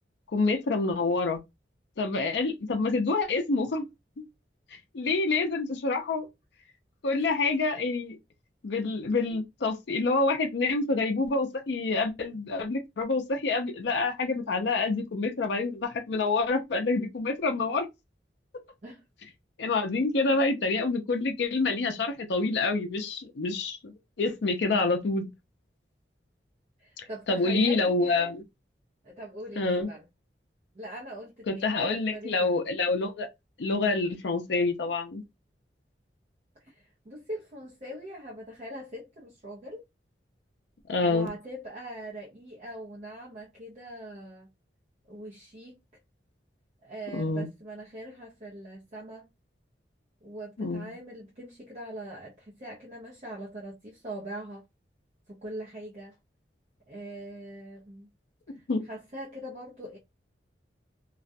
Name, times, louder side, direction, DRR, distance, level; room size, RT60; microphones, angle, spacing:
voice 1, 0.3-1.4 2.0-3.9 4.9-6.3 7.0-8.2 8.6-17.9 19.6-23.8 24.2-25.3 27.0-28.4 29.6-29.9 31.5-33.3 33.6-35.2 40.9-41.3 47.1-47.5 50.6-50.9 58.5-58.8, left 3 dB, 70° left, 0.5 m, -27 dB
voice 2, 7.1-7.4 18.8-19.0 26.8-28.3 29.0-30.1 30.7-32.5 36.6-39.8 41.1-44.5 45.1-45.8 46.8-49.3 50.2-54.6 55.3-56.2 56.9-58.1 58.5-60.0, right 1 dB, 40° right, 0.6 m, -42 dB
2.4 x 2.1 x 2.5 m
head